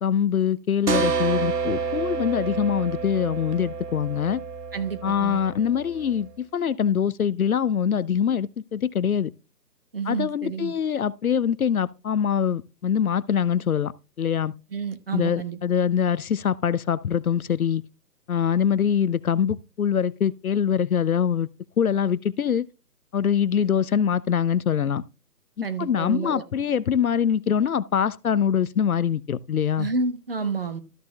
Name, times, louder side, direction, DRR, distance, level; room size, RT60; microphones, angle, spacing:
voice 1, 0.0-4.4 5.0-9.3 10.1-13.9 14.2-14.5 15.1-17.8 18.3-21.5 21.8-22.7 23.1-25.0 25.6-29.9, left 8 dB, 60° left, 0.5 m, -24 dB
sound 1, 0.9-6.3, right 5 dB, 75° right, 1.6 m, -29 dB
voice 2, 4.7-5.4 9.9-10.7 14.7-15.6 25.6-26.4 29.8-30.8, right 4 dB, 35° right, 0.9 m, -29 dB
13.5 x 6.7 x 2.2 m
hypercardioid pair, 165°, 48 cm